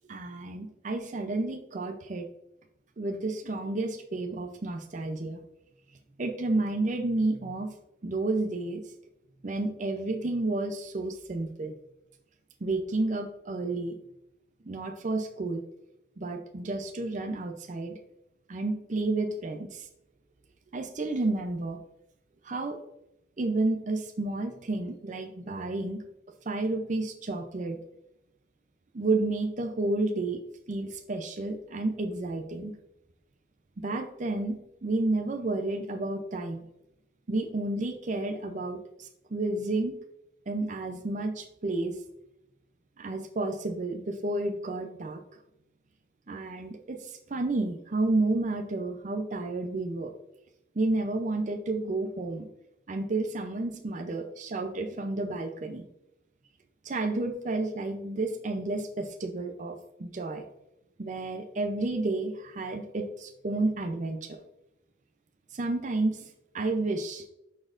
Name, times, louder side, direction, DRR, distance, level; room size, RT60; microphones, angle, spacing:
voice 1, 0.1-2.3 3.0-5.4 6.2-7.7 8.0-8.8 9.4-11.7 12.6-14.0 14.7-15.6 16.2-18.0 18.5-19.9 20.7-21.8 22.4-22.8 23.4-26.0 26.5-27.8 28.9-30.4 30.7-32.7 33.8-36.6 37.3-39.9 40.5-42.0 43.0-45.2 46.3-50.1 50.8-52.5 52.9-55.8 56.8-60.4 61.0-64.4 65.5-66.3 66.5-67.2, right 2 dB, 40° right, 4 dB, 0.5 m, -31 dB
11.0 x 4.2 x 2.5 m, 0.86 s
head